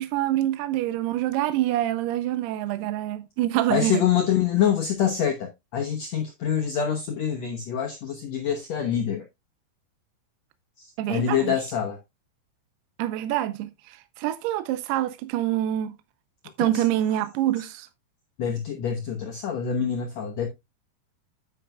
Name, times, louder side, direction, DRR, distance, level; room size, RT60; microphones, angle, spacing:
voice 1, 0.0-4.0 11.0-11.6 13.0-13.7 14.2-15.9 16.6-17.9, right 13 dB, 80° right, 2.7 m, -26 dB
voice 2, 3.7-9.2 10.8-12.0 16.7-16.8 17.1-17.2 17.6-17.7 18.4-20.5, left 8 dB, 85° left, 1.5 m, -26 dB
9.3 x 8.8 x 2.3 m
omnidirectional pair, 4.7 m